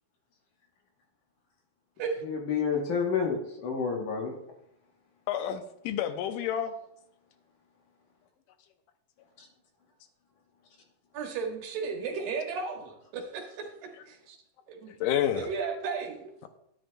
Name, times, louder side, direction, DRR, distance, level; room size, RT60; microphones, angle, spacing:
voice 1, 2.2-4.3 9.4-9.5, left 6 dB, 65° left, 1 dB, 2.3 m, -29 dB
voice 2, 5.3-6.7 14.9-15.5, left 10 dB, 80° left, 8 dB, 1.9 m, -29 dB
voice 3, 11.1-13.7 14.1-14.4 14.7-14.9 15.3-16.3, right 5 dB, 75° right, 2 dB, 3.2 m, -34 dB
12.5 x 10.5 x 2.3 m, 0.77 s
omnidirectional pair, 4.2 m